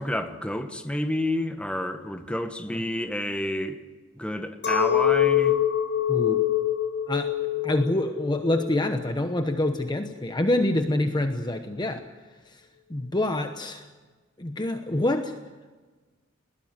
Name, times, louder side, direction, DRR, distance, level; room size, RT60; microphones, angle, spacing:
voice 1, 0.0-3.8 4.2-5.6, left 1 dB, 5° left, 1.4 m, -29 dB
Chink clink, 4.6-10.1, left 10 dB, 60° left, 4.3 m, -25 dB
voice 2, 6.1-6.4 7.1-7.3 7.6-12.0 12.5-12.6 12.9-13.9 14.4-15.3, left 1 dB, 20° left, 1.0 m, -26 dB
21.0 x 19.0 x 9.7 m
head